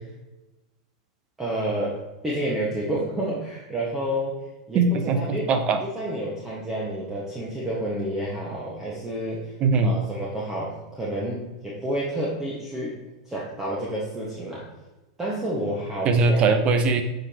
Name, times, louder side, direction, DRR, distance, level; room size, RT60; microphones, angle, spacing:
voice 1, 1.4-4.4 4.7-4.8 5.1-5.5 5.8-9.5 9.8-13.0 13.3-14.6 15.2-16.5, right 1 dB, 15° right, -6 dB, 1.5 m, -29 dB
voice 2, 4.7-5.2 5.5-5.8 9.6-10.0 16.0-17.0, right 3 dB, 35° right, 7 dB, 0.8 m, -20 dB
7.4 x 5.0 x 3.0 m, 1.0 s
hypercardioid pair, 110°, 3 cm